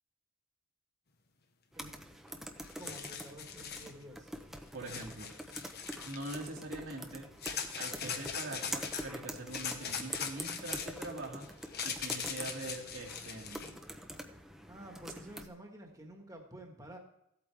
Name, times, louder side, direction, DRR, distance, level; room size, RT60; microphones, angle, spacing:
sound 1, 1.7-15.5, equal, ahead, 0.8 m, -45 dB
sound 2, 2.3-2.4 2.6-3.9 4.8-6.5 7.4-9.1 9.5-13.7, left 7 dB, 55° left, 1.2 m, -40 dB
voice 1, 2.8-4.3 14.7-17.0, right 1 dB, 20° right, 2 dB, 1.7 m, -50 dB
voice 2, 4.7-5.3 6.0-7.3 7.8-11.4 11.8-13.8, right 2 dB, 80° right, -1 dB, 2.5 m, -43 dB
15.5 x 8.5 x 3.5 m, 0.81 s
head